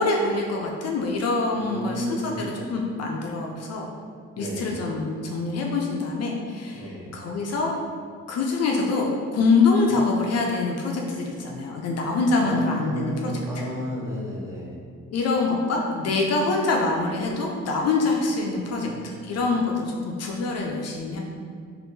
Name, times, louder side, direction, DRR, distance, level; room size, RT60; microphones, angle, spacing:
voice 1, 0.0-3.9 4.4-7.7 8.3-13.3 15.1-21.2, left 3 dB, 55° left, 0 dB, 0.5 m, -25 dB
voice 2, 1.5-2.5 4.3-4.7 6.7-7.2 9.7-10.0 12.4-14.7 18.6-19.4, equal, 10° right, -6 dB, 0.8 m, -33 dB
3.5 x 2.5 x 2.6 m, 2.1 s
cardioid pair, 90°, 30 cm